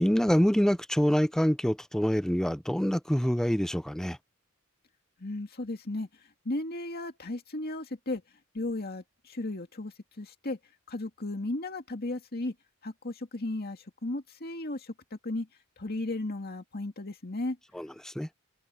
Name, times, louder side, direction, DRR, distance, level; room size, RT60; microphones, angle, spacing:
voice 1, 0.0-4.2 17.7-18.3, equal, 5° left, 0.5 m, -26 dB
voice 2, 5.2-6.1 6.4-8.2 8.5-10.6 10.9-12.5 12.8-15.5 15.8-17.6, left 2 dB, 45° left, 2.1 m, -35 dB
head